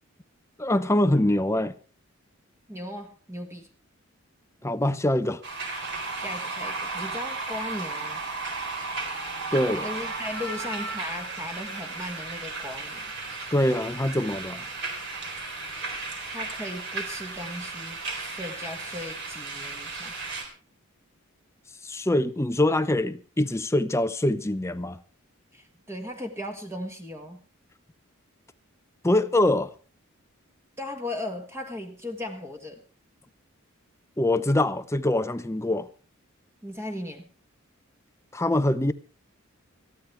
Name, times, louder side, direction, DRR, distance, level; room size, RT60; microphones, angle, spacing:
voice 1, 0.6-1.7 4.6-5.4 9.5-9.8 13.5-14.6 21.8-25.0 29.0-29.7 34.2-35.9 38.3-38.9, left 1 dB, 15° left, 0.6 m, -24 dB
voice 2, 2.7-3.7 6.1-8.2 9.8-13.1 16.3-20.2 25.5-27.4 30.8-32.8 36.6-37.3, left 1 dB, 15° right, 1.6 m, -37 dB
sound 1, 5.4-20.4, right 3 dB, 55° right, 4.0 m, -35 dB
21.5 x 14.5 x 3.4 m
head